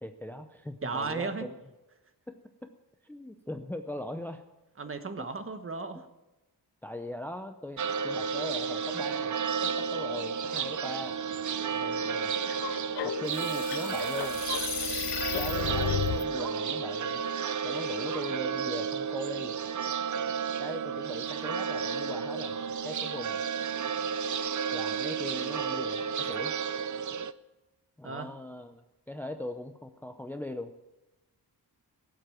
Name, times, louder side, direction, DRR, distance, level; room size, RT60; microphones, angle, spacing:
voice 1, 0.0-1.6 2.3-2.7 3.0-4.4 5.2-5.3 6.8-9.3 9.6-11.2 11.7-12.3 13.0-14.4 15.3-17.2 17.6-19.6 20.6-22.6 22.8-23.4 24.7-26.5 28.0-28.8 29.1-30.8, left 1 dB, 5° left, 8 dB, 0.6 m, -40 dB
voice 2, 0.8-1.5 4.8-6.1 14.9-15.1 28.0-28.3, right 4 dB, 35° right, 9 dB, 1.2 m, -35 dB
sound 1, 7.8-27.3, right 6 dB, 50° right, 0.6 m, -32 dB
sound 2, 12.5-16.2, left 11 dB, 75° left, 0.6 m, -33 dB
17.5 x 7.8 x 8.9 m, 1.1 s
wide cardioid pair, 150°, 40 cm